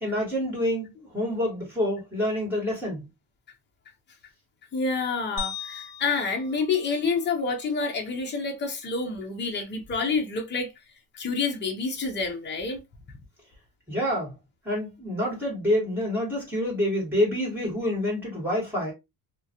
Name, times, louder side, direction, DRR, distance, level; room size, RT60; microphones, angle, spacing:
voice 1, 0.0-3.1 13.9-14.3 14.6-18.9, left 1 dB, 5° right, 1.9 m, -27 dB
voice 2, 4.7-10.7 11.1-12.8, left 4 dB, 25° left, 0.7 m, -28 dB
sound 1, 5.4-7.7, left 6 dB, 50° left, 1.0 m, -39 dB
3.0 x 2.5 x 2.7 m
cardioid pair, 160°, 45 cm